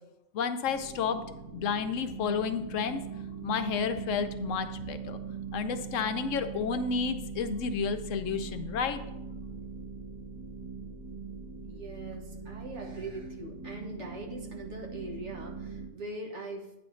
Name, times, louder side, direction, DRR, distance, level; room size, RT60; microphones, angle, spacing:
voice 1, 0.3-1.2 1.5-3.0 3.4-5.2 5.5-9.0, left 6 dB, 75° left, 9 dB, 0.9 m, -31 dB
sound 1, 0.6-15.9, right 5 dB, 15° right, 1.0 m, -41 dB
voice 2, 11.7-16.7, right 2 dB, 60° right, 0 dB, 1.5 m, -41 dB
9.2 x 3.5 x 6.2 m, 0.91 s
omnidirectional pair, 1.4 m